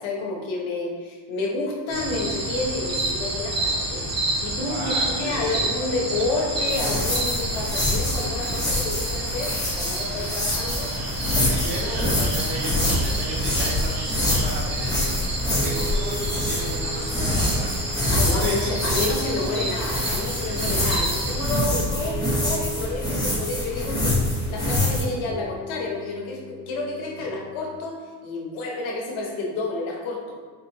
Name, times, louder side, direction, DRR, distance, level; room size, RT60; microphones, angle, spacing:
voice 1, 0.0-4.0 4.4-10.9 18.1-24.2 24.5-30.3, left 3 dB, 80° left, -1 dB, 0.9 m, -30 dB
sound 1, 1.9-21.6, right 1 dB, 35° right, 0.9 m, -29 dB
voice 2, 4.5-5.7 10.2-10.4 11.4-15.2 15.5-19.0 20.5-20.6 27.2-27.3, right 1 dB, 60° right, -2 dB, 1.1 m, -35 dB
sound 2, 6.6-25.0, left 1 dB, 10° left, 1.0 m, -26 dB
Piano, 14.7-27.8, right 2 dB, 15° right, 0.4 m, -38 dB
4.3 x 2.7 x 2.6 m, 1.5 s
cardioid pair, 90°, 47 cm